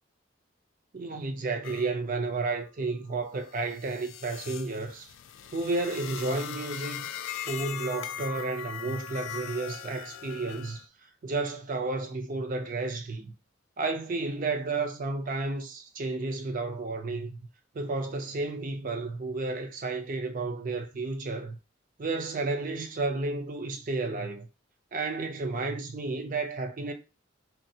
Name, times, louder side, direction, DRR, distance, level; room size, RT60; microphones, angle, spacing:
voice 1, 0.9-5.1 5.5-7.1 7.4-10.9 11.2-13.3 13.8-17.4 17.7-21.6 22.0-24.5 24.9-26.9, right 3 dB, 45° right, 0.5 m, -32 dB
sound 1, 1.6-1.9 2.3-10.9, left 9 dB, 75° left, 0.3 m, -40 dB
3.1 x 2.4 x 2.7 m
head